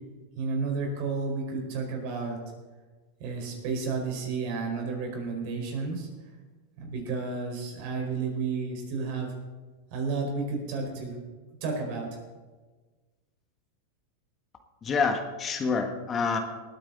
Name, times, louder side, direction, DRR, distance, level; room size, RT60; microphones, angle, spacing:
voice 1, 0.4-2.4 3.2-6.1 6.8-9.3 9.9-11.2 11.6-12.1, right 4 dB, 55° right, 1 dB, 4.7 m, -31 dB
voice 2, 14.8-16.4, left 5 dB, 25° left, 5 dB, 1.4 m, -27 dB
19.5 x 9.3 x 4.0 m, 1.3 s
hypercardioid pair, 115°, 0 cm